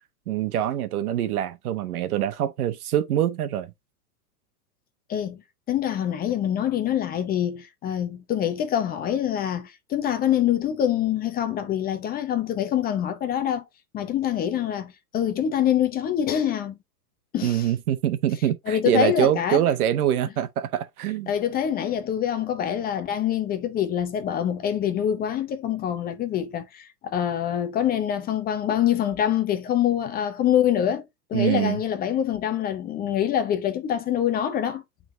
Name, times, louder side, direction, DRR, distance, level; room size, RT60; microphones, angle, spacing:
voice 1, 0.3-3.7 17.4-21.3 31.3-31.8, right 11 dB, 65° right, 1.2 m, -24 dB
voice 2, 5.1-5.4 5.7-13.6 13.9-16.8 17.3-17.7 18.7-19.6 21.3-31.0 31.3-34.8, left 10 dB, 20° left, 0.7 m, -25 dB
9.2 x 3.9 x 2.7 m
hypercardioid pair, 130°, 47 cm